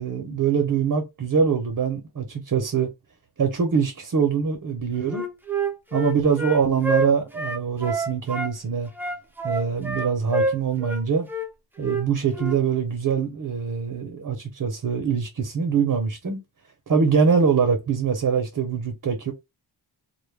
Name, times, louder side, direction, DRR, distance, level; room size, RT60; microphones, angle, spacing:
voice 1, 0.0-2.9 3.4-5.3 5.9-8.9 9.4-11.3 11.8-16.4 16.9-19.3, right 6 dB, 45° right, 0.7 m, -23 dB
Wind instrument woodwind instrument, 5.1-8.5 9.0-11.0 11.3-11.5 11.8-12.0 12.3-12.6, right 2 dB, 5° right, 0.5 m, -27 dB
2.2 x 2.1 x 3.2 m
wide cardioid pair, 90°, 47 cm